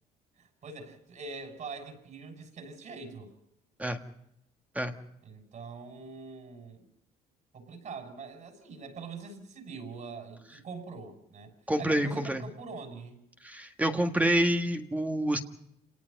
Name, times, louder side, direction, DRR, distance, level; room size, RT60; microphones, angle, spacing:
voice 1, 0.4-3.3 5.2-6.8 7.5-11.5 11.8-13.2, right 4 dB, 50° right, 5 dB, 6.7 m, -43 dB
voice 2, 11.7-12.4 13.4-15.4, right 1 dB, 10° right, 5 dB, 1.7 m, -27 dB
28.0 x 18.5 x 5.4 m, 0.78 s
cardioid pair, 110°, 17 cm